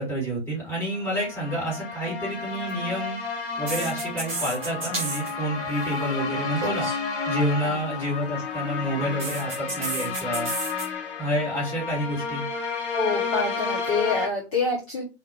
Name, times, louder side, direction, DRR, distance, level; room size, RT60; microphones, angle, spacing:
voice 1, 0.0-3.2 3.6-6.9 7.2-10.5 11.2-12.4, equal, 5° left, -6 dB, 1.4 m, -29 dB
sound 1, 0.9-14.3, left 5 dB, 50° left, 1.2 m, -31 dB
sound 2, 2.5-2.7 3.7-5.3 5.6-5.9 6.6-7.0 9.2-10.8, right 2 dB, 15° right, 0.3 m, -32 dB
voice 2, 12.9-15.0, left 3 dB, 30° left, -3 dB, 0.6 m, -27 dB
2.5 x 2.1 x 2.6 m, 0.29 s
figure-of-eight pair, 120°, 34 cm